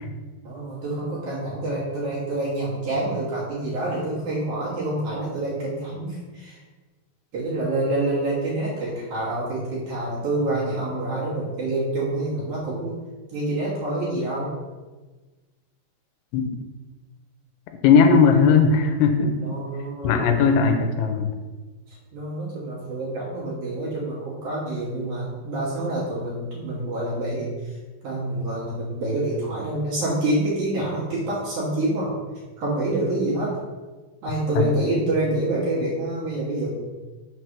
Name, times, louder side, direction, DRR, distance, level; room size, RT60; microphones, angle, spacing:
voice 1, 0.4-6.6 7.3-12.9 13.3-14.5 19.4-20.6 21.9-27.8 28.0-32.1 32.6-33.5 34.2-36.7, right 2 dB, 60° right, -7 dB, 2.4 m, -27 dB
voice 2, 17.8-19.4 20.0-21.3, left 5 dB, 90° left, 6 dB, 2.7 m, -17 dB
6.5 x 3.2 x 5.9 m, 1.3 s
omnidirectional pair, 4.8 m